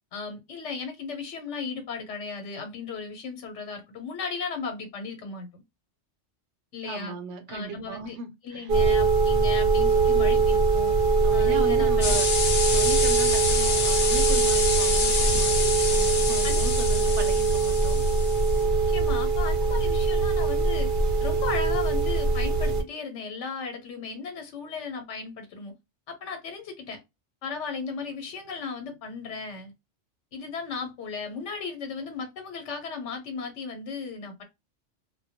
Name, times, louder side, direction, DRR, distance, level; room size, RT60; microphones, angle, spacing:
voice 1, 0.1-5.6 6.7-7.1 7.5-8.2 8.4-10.9 11.3-12.2 16.4-16.6 17.1-17.2 18.9-20.9 21.2-25.7 26.1-27.0 27.4-29.7 30.3-34.4, left 5 dB, 80° left, 1.0 m, -36 dB
voice 2, 6.8-8.7 11.2-12.3 12.7-18.0, right 5 dB, 75° right, 1.0 m, -37 dB
sound 1, 8.7-22.8, right 4 dB, 55° right, 0.7 m, -22 dB
sound 2, 12.0-18.6, left 4 dB, 60° left, 0.9 m, -27 dB
2.2 x 2.1 x 2.7 m
omnidirectional pair, 1.2 m